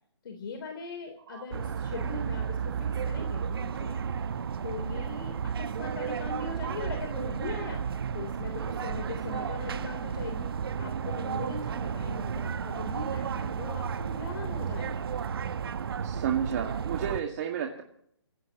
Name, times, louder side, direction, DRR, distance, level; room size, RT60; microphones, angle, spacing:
voice 1, 0.2-4.2 4.6-7.8 8.1-15.0, left 4 dB, 50° left, 4 dB, 3.6 m, -40 dB
sound 1, 1.5-17.2, right 7 dB, 55° right, 1.0 m, -33 dB
voice 2, 16.0-17.8, right 8 dB, 35° right, 2 dB, 2.0 m, -31 dB
27.0 x 17.0 x 3.0 m, 0.68 s
hypercardioid pair, 155°, 15 cm